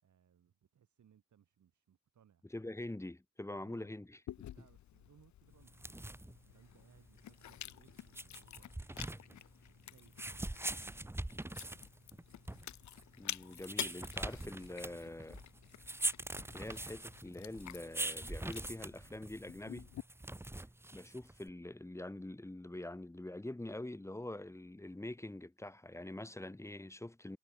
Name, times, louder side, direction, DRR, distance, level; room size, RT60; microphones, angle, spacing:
voice 1, 0.0-2.5 3.6-3.9 4.5-8.7 9.6-10.9, right 9 dB, 80° right, 5.1 m, -68 dB
voice 2, 2.5-4.2 13.2-15.4 16.5-19.9 20.6-20.7 20.9-27.4, left 1 dB, 10° left, 1.5 m, -45 dB
Chewing mastication, 4.3-20.0, left 12 dB, 75° left, 0.6 m, -50 dB
sound 1, 5.6-21.5, right 1 dB, 10° right, 1.1 m, -43 dB
wide cardioid pair, 150°, 29 cm